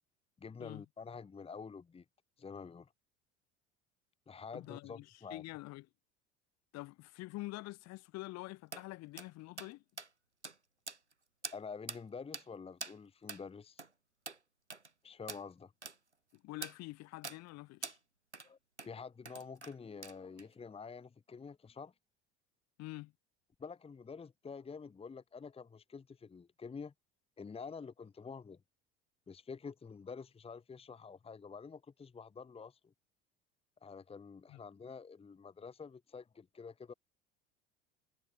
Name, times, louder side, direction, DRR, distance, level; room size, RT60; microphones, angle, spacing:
voice 1, 0.4-2.0 2.4-2.9 4.3-5.4 11.5-13.8 15.0-15.7 18.4-21.9 23.6-26.9 27.4-28.6 29.3-32.9 33.8-36.9, left 5 dB, 15° left, 1.3 m, -48 dB
voice 2, 4.5-5.9 6.7-9.8 16.3-18.0 22.8-23.1 34.5-34.6, left 20 dB, 50° left, 2.3 m, -46 dB
sound 1, 8.7-8.8 9.2-9.3 9.6-9.7 10.0-10.1 10.4-10.6 10.9-11.1 11.4-11.6 11.9-12.0 12.3-12.5 12.8-13.0 13.3-13.4 13.8-13.9 14.3-14.4 14.7-14.9 15.3-15.4 15.8-16.0 16.6-16.8 17.2-17.4 17.8-18.0 18.3-18.5 18.8-18.9 19.3-19.7 20.0-20.5, right 3 dB, 90° right, 2.4 m, -45 dB
figure-of-eight pair, 70°, 34 cm